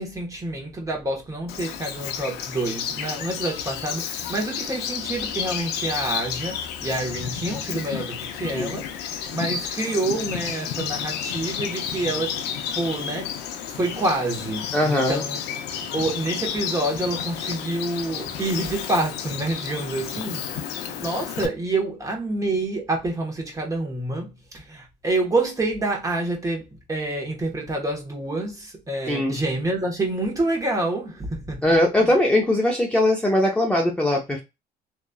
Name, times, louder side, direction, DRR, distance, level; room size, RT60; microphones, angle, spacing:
voice 1, 0.0-12.4 12.7-13.4 13.7-15.4 15.9-32.1, right 2 dB, 20° right, 1.1 m, -27 dB
Bird vocalization bird call bird song, 1.5-21.5, left 8 dB, 85° left, 0.5 m, -31 dB
voice 2, 14.7-15.2 29.1-29.3 31.6-34.4, left 1 dB, 5° left, 0.7 m, -20 dB
3.0 x 2.5 x 2.3 m
cardioid pair, 110°, 17 cm